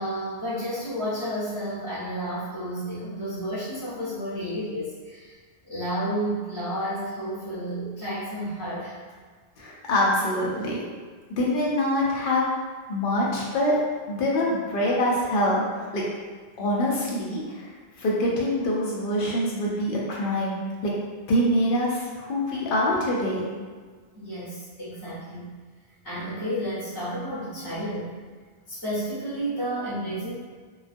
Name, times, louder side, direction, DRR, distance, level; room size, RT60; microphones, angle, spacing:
voice 1, 0.0-5.4 5.7-9.0 22.2-22.3 24.1-25.5 26.0-28.2 28.7-30.3, equal, 20° left, -12 dB, 0.9 m, -31 dB
voice 2, 9.6-10.8 11.3-12.4 12.9-13.7 14.1-16.0 16.6-17.7 18.0-20.9 21.3-23.5, left 1 dB, 60° left, -4 dB, 0.7 m, -25 dB
2.3 x 2.2 x 2.5 m, 1.5 s
omnidirectional pair, 1.1 m